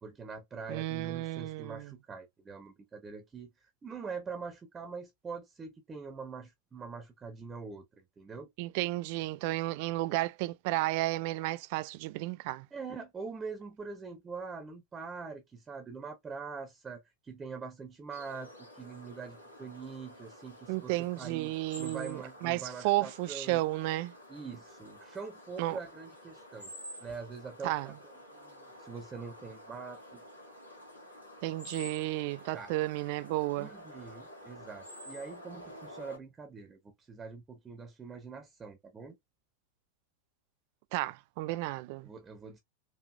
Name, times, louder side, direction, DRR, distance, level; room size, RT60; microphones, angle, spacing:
voice 1, 0.0-8.5 12.7-21.5 21.8-23.6 24.3-26.7 27.0-27.9 28.3-30.2 32.5-32.7 33.6-39.2 41.5-41.6 42.0-42.6, right 5 dB, 20° right, 1.0 m, -44 dB
voice 2, 0.7-1.9 8.6-12.7 20.7-24.1 25.6-25.8 27.6-27.9 31.4-33.7 40.9-42.1, right 18 dB, 45° right, 0.3 m, -33 dB
sound 1, 18.1-36.2, equal, 85° left, 2.3 m, -50 dB
4.7 x 2.7 x 2.6 m
figure-of-eight pair, 90°, 0 cm